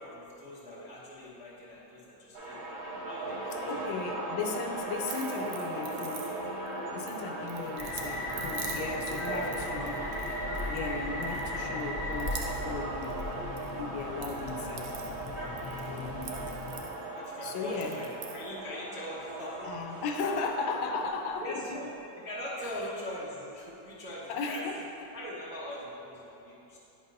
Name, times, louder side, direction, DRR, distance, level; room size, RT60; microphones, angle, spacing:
voice 1, 0.0-2.7 3.0-3.6 7.4-7.7 9.3-9.7 15.9-16.4 17.1-20.0 21.4-21.9 22.1-24.7 25.1-26.8, left 1 dB, 10° right, -8 dB, 0.4 m, -42 dB
sound 1, 2.3-21.1, right 2 dB, 45° right, 0.9 m, -38 dB
voice 2, 3.6-6.4 6.9-10.0 10.6-13.3 13.7-14.9 15.9-16.4 17.4-18.0 19.6-21.9 22.6-22.7 24.3-24.8, left 4 dB, 80° left, 4 dB, 1.3 m, -36 dB
sound 2, 5.1-6.7 7.1-10.9 11.2-11.8 12.1-13.7 14.0-17.3 17.7-18.5, right 7 dB, 75° right, 0.9 m, -45 dB
sound 3, 7.8-16.8, left 2 dB, 50° left, 1.0 m, -38 dB
8.7 x 5.4 x 2.6 m, 2.9 s
omnidirectional pair, 2.1 m